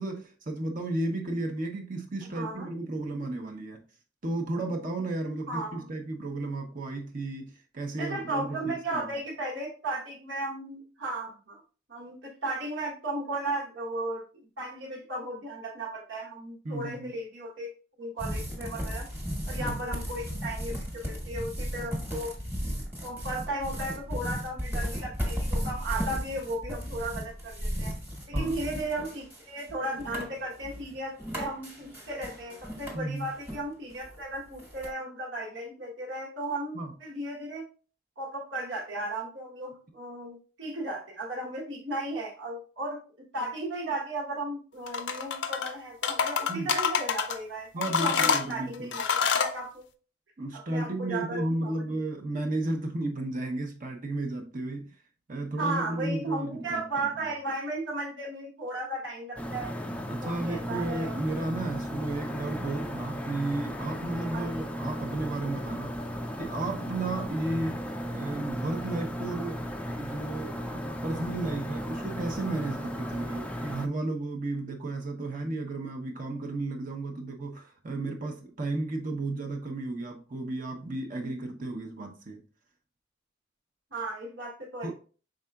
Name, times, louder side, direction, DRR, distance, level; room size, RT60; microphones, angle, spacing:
voice 1, 0.0-3.8 4.2-9.1 16.6-17.1 19.6-19.8 28.3-28.6 32.9-33.3 36.7-36.9 46.5-46.7 47.7-49.0 50.4-54.9 55.3-57.3 60.1-66.0 66.4-67.8 68.1-69.6 70.0-82.4 84.8-84.9, right 2 dB, 45° right, 0.7 m, -33 dB
voice 2, 2.3-2.7 5.5-5.9 7.9-11.6 11.9-14.3 14.6-17.7 18.0-19.1 19.5-22.3 23.0-27.9 28.3-37.7 38.2-43.0 43.3-49.8 50.5-52.0 55.6-59.7 60.2-61.2 64.3-64.7 83.9-84.9, right 2 dB, 70° right, 1.0 m, -35 dB
sound 1, 18.2-33.6 33.9-34.9, equal, 10° right, 1.1 m, -35 dB
sound 2, 44.9-45.7 46.0-47.4 47.8-49.5, left 6 dB, 65° left, 0.5 m, -27 dB
sound 3, 59.4-73.9, equal, 5° left, 0.3 m, -35 dB
5.4 x 3.7 x 2.2 m
head